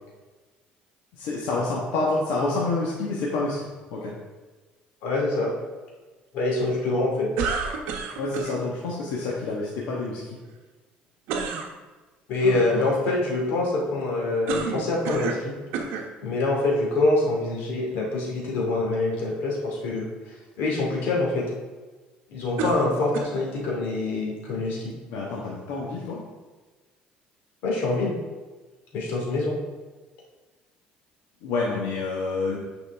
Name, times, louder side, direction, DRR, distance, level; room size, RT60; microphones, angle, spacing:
voice 1, 1.1-3.6 3.9-4.1 8.2-10.3 12.4-12.8 25.1-26.2 31.4-32.6, left 3 dB, 85° left, -5 dB, 1.4 m, -28 dB
voice 2, 5.0-5.5 6.3-7.3 12.3-15.5 16.2-20.1 20.6-21.4 22.3-24.9 27.6-28.2 28.9-29.6, left 2 dB, 70° left, -2 dB, 2.4 m, -25 dB
sound 1, 7.4-8.5 11.3-11.7 14.5-15.5 15.7-16.1 16.9-17.0 22.6-23.5, right 5 dB, 80° right, 1.0 m, -29 dB
9.2 x 5.2 x 3.5 m, 1.3 s
cardioid pair, 155°, 3 cm